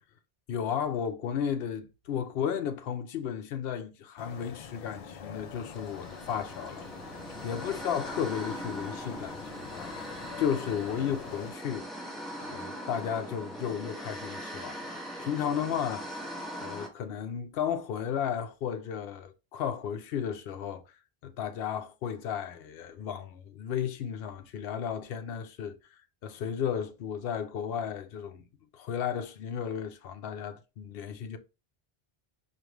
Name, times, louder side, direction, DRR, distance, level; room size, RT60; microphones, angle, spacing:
voice 1, 0.5-9.4 9.7-9.9 10.4-16.3 16.6-20.8 21.2-25.8 26.2-28.4 28.7-31.4, left 8 dB, 70° left, 0.8 m, -34 dB
sound 1, 4.2-11.5, left 6 dB, 55° left, 0.4 m, -45 dB
sound 2, 5.6-16.9, equal, ahead, 0.9 m, -41 dB
4.9 x 2.6 x 2.9 m
omnidirectional pair, 1.0 m